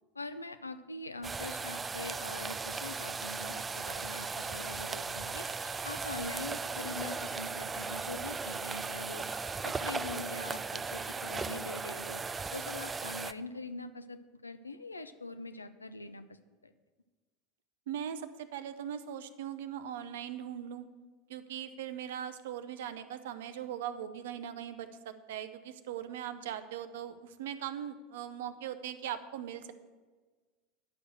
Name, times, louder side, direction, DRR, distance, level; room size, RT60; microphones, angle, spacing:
voice 1, 0.1-9.3 9.6-12.2 12.5-16.4 16.6-16.7, left 3 dB, 85° left, 11 dB, 0.6 m, -43 dB
sound 1, 1.2-13.3, right 4 dB, 20° right, 0.4 m, -37 dB
voice 2, 17.9-20.9 21.3-29.7, right 9 dB, 65° right, 10 dB, 0.8 m, -40 dB
9.9 x 6.3 x 7.5 m, 1.4 s
figure-of-eight pair, 80°, 0 cm